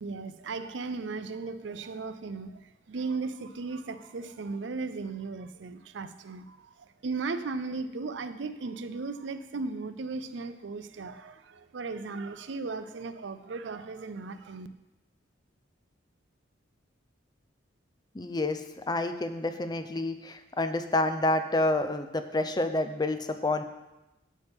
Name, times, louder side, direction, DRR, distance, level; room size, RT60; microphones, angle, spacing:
voice 1, 0.0-14.7, right 4 dB, 70° right, 11 dB, 0.5 m, -36 dB
voice 2, 18.1-18.6 18.9-23.6, left 2 dB, 20° left, 9 dB, 0.6 m, -28 dB
12.0 x 8.3 x 3.6 m, 0.97 s
head